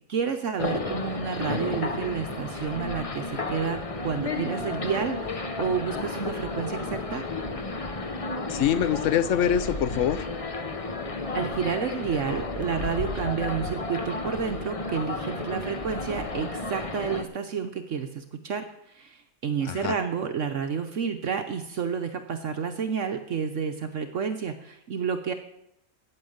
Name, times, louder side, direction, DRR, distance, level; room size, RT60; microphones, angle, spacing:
voice 1, 0.1-7.2 11.3-18.7 18.9-25.3, right 6 dB, 60° right, 7 dB, 1.1 m, -30 dB
sound 1, 0.6-17.2, left 3 dB, 30° left, 0.7 m, -32 dB
voice 2, 8.5-10.3 19.6-20.0, left 9 dB, 65° left, 15 dB, 0.8 m, -24 dB
8.9 x 8.9 x 7.9 m, 0.79 s
omnidirectional pair, 1.6 m